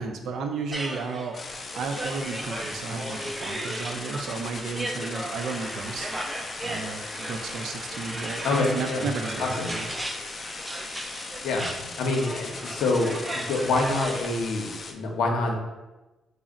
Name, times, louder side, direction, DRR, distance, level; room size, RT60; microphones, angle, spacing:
voice 1, 0.0-1.4 1.8-6.1 6.6-9.9, right 4 dB, 70° right, 4 dB, 0.5 m, -33 dB
sound 1, 0.7-14.4, right 1 dB, 15° right, 0.4 m, -36 dB
sound 2, 1.3-14.9, left 4 dB, 45° left, 0.4 m, -39 dB
voice 2, 8.4-9.1 9.4-9.7 11.2-11.7 12.0-15.5, left 2 dB, 80° left, 1 dB, 0.6 m, -26 dB
4.2 x 2.0 x 3.6 m, 1.1 s
cardioid pair, 90°, 0 cm